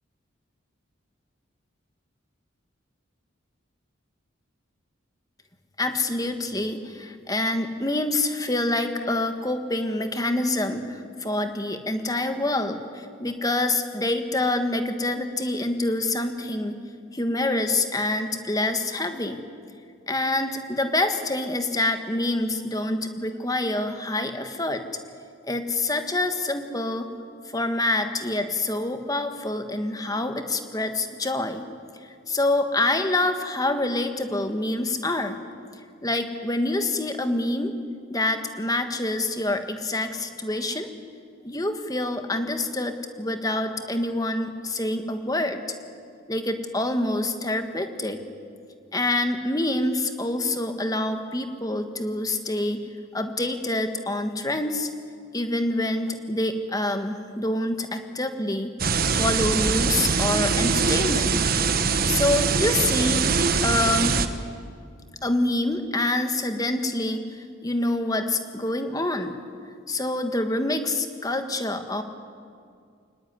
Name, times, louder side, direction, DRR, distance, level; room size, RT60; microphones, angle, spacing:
voice 1, 5.8-16.8 17.1-19.4 20.1-24.8 25.5-27.1 27.5-31.7 32.3-35.4 36.0-37.7 38.1-40.9 41.4-45.6 46.3-48.2 48.9-52.8 53.1-54.9 55.3-58.7 59.1-61.4 62.1-63.2 63.6-64.2 65.2-69.4 69.9-72.0, left 2 dB, 20° left, 7 dB, 1.6 m, -26 dB
Tape hiss, 58.8-64.3, right 5 dB, 45° right, 1.2 m, -23 dB
23.5 x 19.5 x 9.7 m, 2.2 s
head